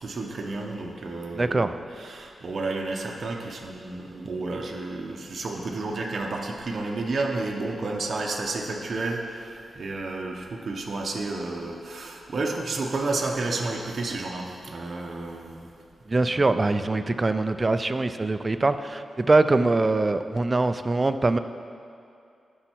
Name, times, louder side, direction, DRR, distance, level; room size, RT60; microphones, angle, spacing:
voice 1, 0.0-15.7 16.2-16.4, right 3 dB, 50° right, 0 dB, 0.8 m, -31 dB
voice 2, 1.3-1.7 16.1-21.4, right 2 dB, 25° right, 10 dB, 0.3 m, -23 dB
11.0 x 5.6 x 4.5 m, 2.5 s
wide cardioid pair, 115°, 0 cm